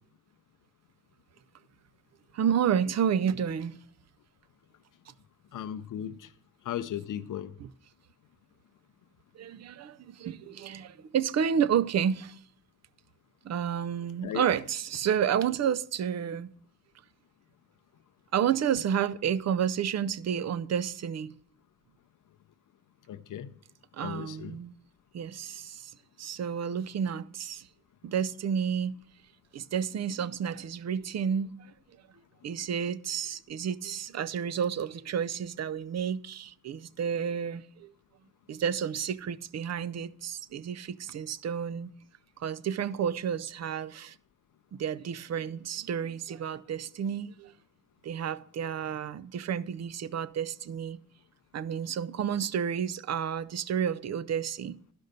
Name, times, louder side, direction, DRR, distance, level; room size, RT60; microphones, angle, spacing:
voice 1, 2.3-3.8 7.6-7.7 9.3-12.4 13.4-16.5 18.3-21.3 23.9-24.7 25.1-27.7 28.0-29.0 29.5-31.7 32.4-37.9 38.5-41.9 42.4-44.2 44.7-47.5 48.0-51.0 51.5-54.8, right 8 dB, 55° right, 0.5 m, -30 dB
voice 2, 5.5-6.2 6.7-7.5 14.2-14.4 23.1-23.5 24.0-24.5, left 10 dB, 70° left, 0.5 m, -36 dB
12.0 x 5.3 x 6.5 m
cardioid pair, 85°, 32 cm